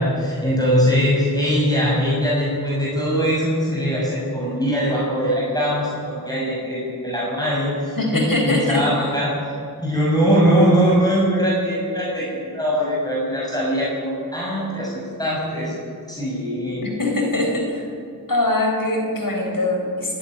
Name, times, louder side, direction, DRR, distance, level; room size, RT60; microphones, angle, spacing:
voice 1, 0.0-9.3 9.8-15.7 16.1-16.8, equal, 10° left, -5 dB, 6.5 m, -21 dB
voice 2, 8.0-8.8 16.8-17.9 18.3-20.2, left 2 dB, 65° left, 1 dB, 4.5 m, -22 dB
25.5 x 11.5 x 9.8 m, 2.4 s
wide cardioid pair, 55°, 36 cm